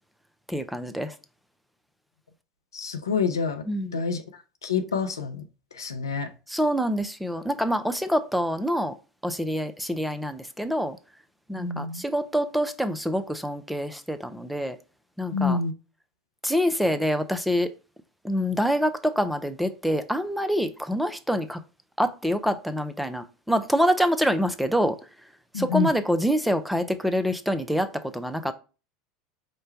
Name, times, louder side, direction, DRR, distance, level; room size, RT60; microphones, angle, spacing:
voice 1, 0.5-1.1 3.7-4.0 6.5-8.9 9.2-11.0 11.5-14.8 15.2-15.6 16.4-17.7 18.2-21.6 22.0-25.0 25.5-28.5, equal, ahead, 0.6 m, -26 dB
voice 2, 2.7-3.6 3.9-4.2 4.6-5.4 5.8-6.3 11.6-12.0 15.3-15.7 25.5-25.9, left 5 dB, 85° left, 0.6 m, -27 dB
5.1 x 2.2 x 4.3 m
hypercardioid pair, 80°, 2 cm